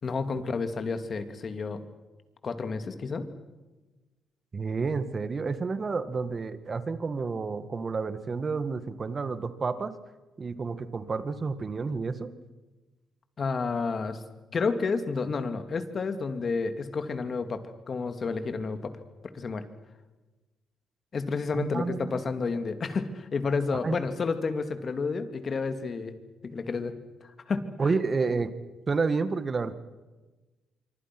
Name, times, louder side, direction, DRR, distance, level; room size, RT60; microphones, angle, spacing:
voice 1, 0.0-1.8 2.4-3.3 13.4-14.2 14.5-18.9 19.3-19.6 21.1-26.1 26.4-26.9 27.2-27.7, left 4 dB, 45° left, 9 dB, 2.6 m, -30 dB
voice 2, 4.5-9.9 10.4-12.3 21.5-22.2 23.8-24.0 27.8-28.5 28.9-29.7, right 4 dB, 35° right, 12 dB, 2.0 m, -30 dB
26.0 x 24.5 x 6.2 m, 1.2 s
cardioid pair, 90°, 0 cm